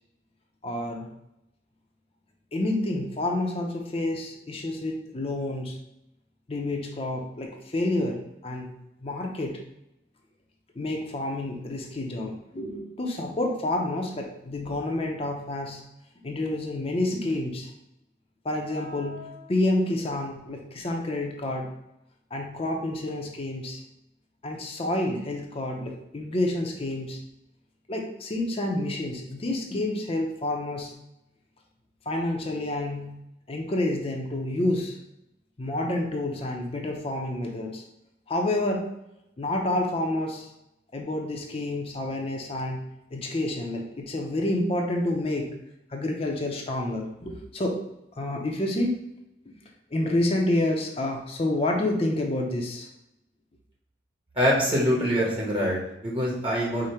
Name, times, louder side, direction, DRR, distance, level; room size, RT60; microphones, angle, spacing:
voice 1, 0.6-1.1 2.5-5.8 6.5-8.7 9.0-9.6 10.8-15.8 16.2-17.7 18.4-21.7 22.3-23.8 24.4-27.2 27.9-30.9 32.1-33.1 33.5-35.0 35.6-37.8 38.3-38.8 39.4-40.5 40.9-42.8 43.1-45.5 45.9-47.8 48.2-49.0 49.9-52.9, left 1 dB, 35° left, 1 dB, 0.6 m, -29 dB
voice 2, 54.3-56.9, equal, 30° right, -4 dB, 1.0 m, -24 dB
5.0 x 2.1 x 4.3 m, 0.84 s
head